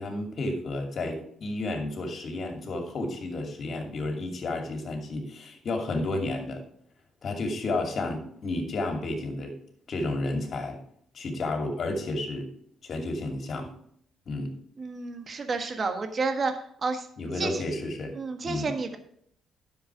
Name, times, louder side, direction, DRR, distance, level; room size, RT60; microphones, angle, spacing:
voice 1, 0.0-6.6 7.2-9.6 9.9-10.8 11.1-12.5 12.8-13.7 14.3-14.5 17.2-18.1 18.4-18.7, left 2 dB, 55° left, 3 dB, 2.6 m, -31 dB
voice 2, 14.8-16.5 16.8-17.1 17.4-17.6 18.1-19.0, right 4 dB, 45° right, 6 dB, 1.4 m, -30 dB
10.5 x 7.3 x 4.9 m, 0.66 s
cardioid pair, 75°, 0 cm